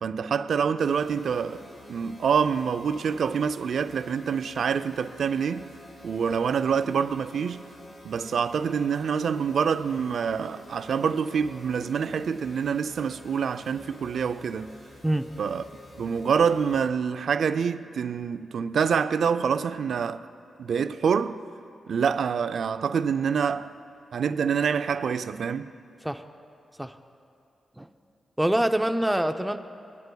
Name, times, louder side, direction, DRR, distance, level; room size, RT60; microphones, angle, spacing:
voice 1, 0.0-5.7 6.0-7.6 8.0-14.7 15.4-15.6 16.0-20.2 20.6-21.4 21.9-23.7 24.1-25.7, right 6 dB, 75° right, 0.4 m, -26 dB
sound 1, 0.8-16.9, left 1 dB, 70° left, 2.3 m, -48 dB
voice 2, 28.4-29.6, right 1 dB, 5° right, 0.5 m, -25 dB
23.0 x 9.5 x 2.3 m
cardioid pair, 70°, 0 cm